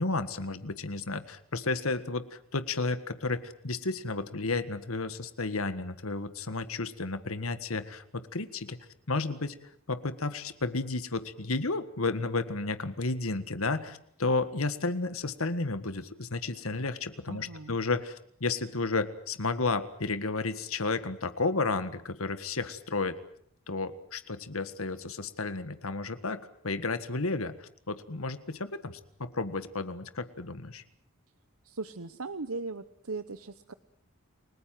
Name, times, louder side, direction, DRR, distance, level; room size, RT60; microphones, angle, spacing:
voice 1, 0.0-8.8 9.1-9.5 9.9-23.2 23.7-30.8, left 3 dB, 80° left, 12 dB, 1.6 m, -32 dB
voice 2, 17.3-17.8 31.6-33.7, right 3 dB, 85° right, 13 dB, 1.0 m, -38 dB
30.0 x 19.5 x 7.7 m, 0.64 s
head